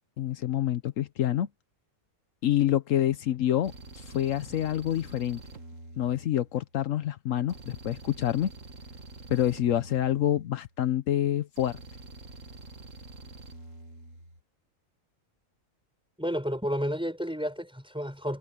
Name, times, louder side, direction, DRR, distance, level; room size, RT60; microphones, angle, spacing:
voice 1, 0.2-1.5 2.4-5.4 6.0-8.5 9.3-11.8, left 11 dB, 75° left, 1.1 m, -27 dB
sound 1, 3.6-6.8 7.5-10.8 11.6-14.4, right 2 dB, 70° right, 2.5 m, -47 dB
voice 2, 16.2-18.4, equal, 5° right, 4.5 m, -31 dB
omnidirectional pair, 1.4 m